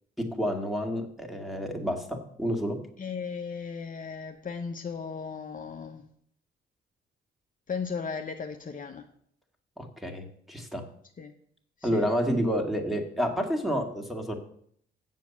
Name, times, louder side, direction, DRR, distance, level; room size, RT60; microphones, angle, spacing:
voice 1, 0.2-2.8 9.8-10.8 11.8-14.4, equal, ahead, 4 dB, 2.2 m, -29 dB
voice 2, 3.0-6.1 7.7-9.0 11.2-11.3 11.8-12.1, left 5 dB, 40° left, 4 dB, 0.9 m, -36 dB
7.5 x 7.5 x 7.2 m, 0.65 s
cardioid pair, 70°, 21 cm